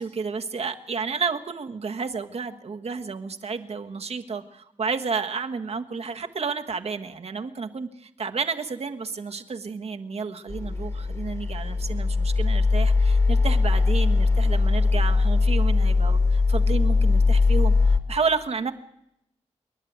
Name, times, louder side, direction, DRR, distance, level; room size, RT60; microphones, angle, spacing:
voice 1, 0.0-18.7, right 5 dB, 65° right, 5 dB, 1.5 m, -31 dB
sound 1, 10.5-18.0, left 3 dB, 30° left, 1.9 m, -21 dB
26.5 x 11.0 x 9.5 m, 0.81 s
cardioid pair, 65°, 12 cm